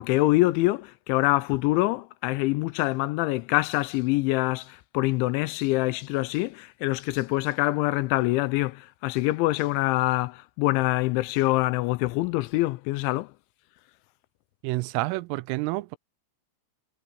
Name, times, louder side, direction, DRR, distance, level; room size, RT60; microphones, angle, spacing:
voice 1, 0.0-13.3, left 19 dB, 80° left, 2.8 m, -25 dB
voice 2, 14.6-16.0, right 21 dB, 85° right, 3.3 m, -29 dB
omnidirectional pair, 5.8 m